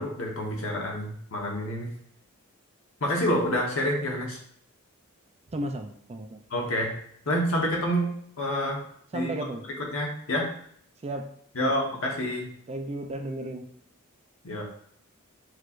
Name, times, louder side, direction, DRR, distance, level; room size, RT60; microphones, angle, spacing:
voice 1, 0.0-1.9 3.0-4.4 6.5-6.9 7.3-8.1 8.4-8.8 9.1-9.3 9.8-10.5 11.5-12.5 14.4-14.6, equal, 70° left, -1 dB, 1.2 m, -28 dB
voice 2, 5.5-6.4 9.1-9.7 11.0-11.3 11.6-11.7 12.7-13.7, right 1 dB, 30° right, 5 dB, 0.4 m, -34 dB
6.3 x 3.1 x 2.5 m, 0.65 s
head